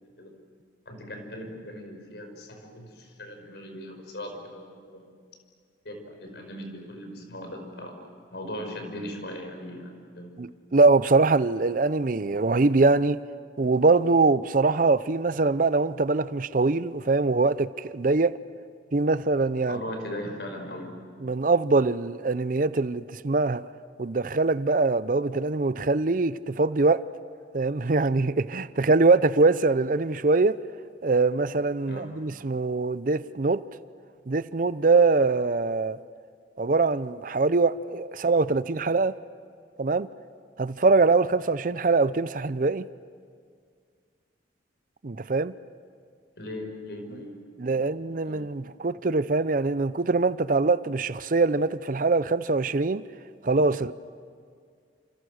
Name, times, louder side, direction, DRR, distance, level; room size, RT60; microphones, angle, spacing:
voice 1, 0.9-5.0 5.8-10.3 19.7-21.0 31.9-32.2 46.4-47.4 47.7-48.4, left 1 dB, 70° left, 5.7 m, -39 dB
voice 2, 10.4-13.2 13.6-18.4 18.9-19.8 21.2-23.6 24.0-27.0 27.5-30.6 31.0-33.6 34.3-36.0 36.6-39.1 39.8-40.1 40.6-42.9 45.0-45.5 47.6-53.0 53.4-53.9, right 3 dB, 50° right, 0.6 m, -23 dB
29.5 x 28.5 x 6.5 m
head